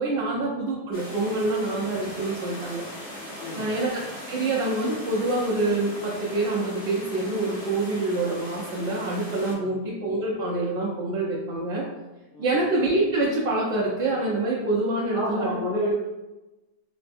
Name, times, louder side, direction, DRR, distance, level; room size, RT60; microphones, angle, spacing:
voice 1, 0.0-2.8 3.5-4.0 4.3-11.8 12.4-15.6, right 2 dB, 60° right, -8 dB, 0.7 m, -26 dB
sound 1, 0.9-9.5, equal, 45° left, 1.2 m, -39 dB
voice 2, 3.4-3.8 9.5-9.7 12.3-12.6 15.1-15.9, left 1 dB, 85° left, -6 dB, 1.2 m, -30 dB
4.2 x 2.1 x 2.5 m, 1.1 s
omnidirectional pair, 1.6 m